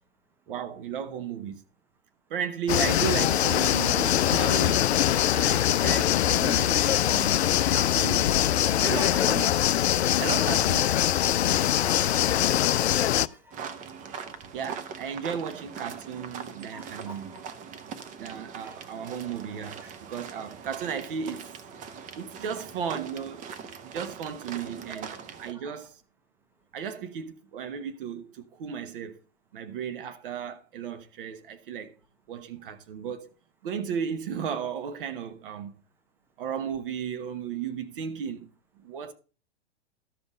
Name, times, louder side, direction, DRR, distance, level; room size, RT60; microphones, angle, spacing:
voice 1, 0.5-1.6 2.3-5.0 5.3-7.5 7.7-8.3 8.6-9.5 10.2-10.9 14.5-17.3 18.2-21.5 22.1-23.5 23.8-25.1 25.4-26.0 26.7-29.2 29.5-31.9 32.3-33.3 33.6-35.7 36.4-38.5 38.8-39.1, right 7 dB, 50° right, 1.1 m, -35 dB
sound 1, 2.7-13.3, left 11 dB, 70° left, 0.5 m, -23 dB
voice 2, 6.9-7.7 8.0-9.5 11.4-13.6 14.3-14.4 16.7-17.4 18.0-18.1 18.6-18.8 19.8-19.9 22.4-22.7 24.9-25.2 25.5-25.9, right 1 dB, 5° right, 1.1 m, -43 dB
sound 2, 13.5-25.5, right 6 dB, 20° right, 0.9 m, -41 dB
13.0 x 5.4 x 4.9 m
figure-of-eight pair, 110°, 34 cm